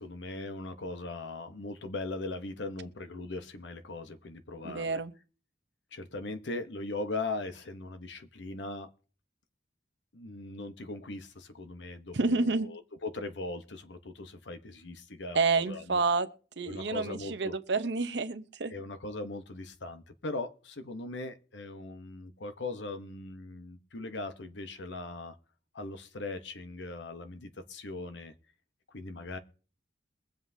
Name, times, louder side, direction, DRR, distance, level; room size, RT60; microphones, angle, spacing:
voice 1, 0.0-5.0 5.9-8.9 10.1-16.0 16.7-17.5 18.7-25.4 25.7-28.3 28.9-29.4, left 2 dB, 80° left, 1.0 m, -39 dB
voice 2, 4.6-5.1 12.1-12.7 15.3-16.3 16.6-18.7, right 4 dB, 70° right, 0.8 m, -29 dB
22.5 x 7.7 x 2.7 m
head